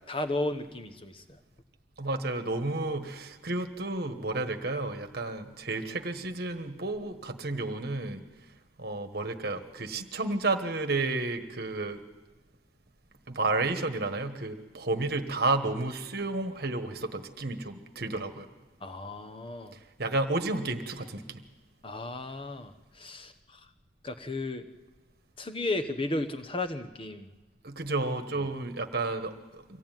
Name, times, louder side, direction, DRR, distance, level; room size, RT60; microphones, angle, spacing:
voice 1, 0.1-1.4 18.8-19.7 21.8-23.6 24.0-24.7 25.4-27.3, left 2 dB, 25° left, 9 dB, 1.1 m, -34 dB
voice 2, 2.0-8.2 8.8-12.0 13.3-18.5 19.7-21.4 27.6-29.8, right 2 dB, 50° right, 7 dB, 1.4 m, -31 dB
24.0 x 16.5 x 9.2 m, 1.2 s
head